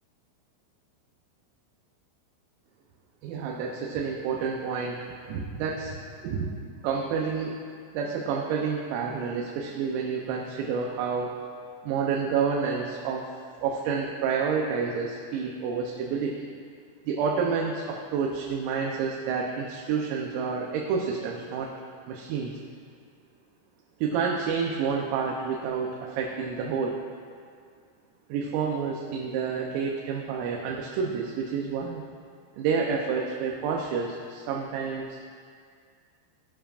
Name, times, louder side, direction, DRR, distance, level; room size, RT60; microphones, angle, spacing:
voice 1, 3.2-7.6 7.9-11.3 11.8-13.3 13.6-16.5 17.1-21.7 22.1-22.6 24.0-27.0 28.3-32.0 32.5-35.4, right 5 dB, 85° right, -1 dB, 3.5 m, -29 dB
18.0 x 11.5 x 2.5 m, 2.2 s
omnidirectional pair, 5.9 m